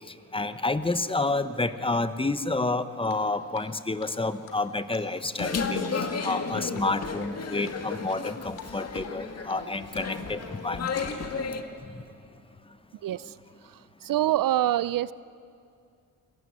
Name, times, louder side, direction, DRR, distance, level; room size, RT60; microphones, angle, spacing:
voice 1, 0.3-5.8 6.2-11.0, left 2 dB, 15° left, 12 dB, 1.0 m, -29 dB
Drip, 3.0-3.7 4.0-4.1 4.4-6.0 6.3-6.5 6.7-7.3 7.6-8.2 8.6-8.7 9.0-10.1 10.3-11.5, left 7 dB, 90° left, 3.6 m, -46 dB
sound 1, 5.4-11.6, left 5 dB, 50° left, 2.1 m, -33 dB
voice 2, 14.1-15.1, right 13 dB, 80° right, 19 dB, 0.6 m, -24 dB
27.5 x 19.0 x 9.8 m, 2.4 s
cardioid pair, 105°, 33 cm